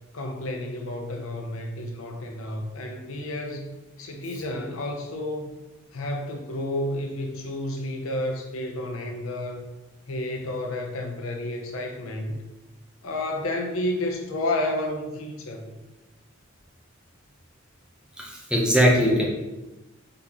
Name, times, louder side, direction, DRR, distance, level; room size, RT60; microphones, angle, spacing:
voice 1, 0.1-3.7 4.0-5.6 5.9-9.6 10.1-12.5 13.0-15.8, left 1 dB, 75° left, 3 dB, 0.6 m, -31 dB
voice 2, 18.2-19.3, equal, 5° right, -3 dB, 0.7 m, -20 dB
4.0 x 4.0 x 3.0 m, 1.0 s
head